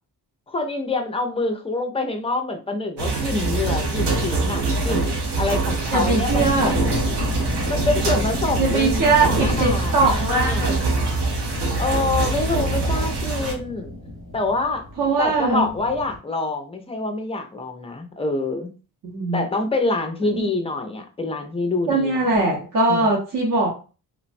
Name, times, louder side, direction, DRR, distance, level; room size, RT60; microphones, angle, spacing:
voice 1, 0.5-10.7 11.7-13.9 14.3-14.8 15.2-18.7 19.3-22.6 22.9-23.2, left 2 dB, 15° left, 6 dB, 0.3 m, -26 dB
sound 1, 3.0-13.5, right 2 dB, 80° right, 0.8 m, -24 dB
voice 2, 5.9-6.7 8.6-10.7 15.0-15.7 19.0-19.4 20.3-20.4 21.9-23.7, right 3 dB, 50° right, -4 dB, 0.8 m, -21 dB
sound 2, 6.3-16.2, left 1 dB, 65° right, 1.4 m, -31 dB
3.2 x 2.0 x 2.5 m, 0.35 s
wide cardioid pair, 160°, 40 cm